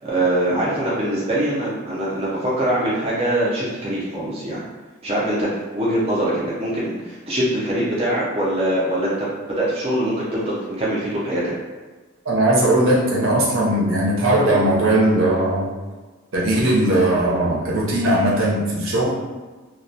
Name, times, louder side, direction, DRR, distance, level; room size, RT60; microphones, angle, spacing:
voice 1, 0.0-4.6 5.0-11.5, right 1 dB, 30° right, -7 dB, 0.4 m, -23 dB
voice 2, 12.2-15.7 16.3-19.2, right 1 dB, 75° right, -5 dB, 0.7 m, -18 dB
2.2 x 2.1 x 2.6 m, 1.3 s
head